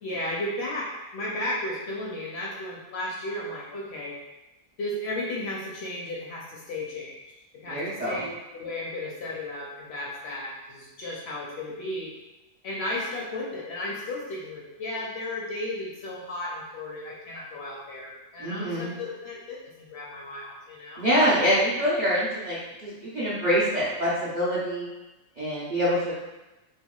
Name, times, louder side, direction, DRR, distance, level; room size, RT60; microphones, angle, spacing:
voice 1, 0.0-4.1 4.8-7.2 7.6-12.1 12.6-21.1, left 1 dB, 65° left, -4 dB, 0.7 m, -34 dB
voice 2, 7.7-8.2 18.4-19.0 21.0-24.9 25.4-26.1, equal, 50° right, -10 dB, 0.5 m, -25 dB
3.5 x 2.2 x 2.3 m, 1.0 s
omnidirectional pair, 1.4 m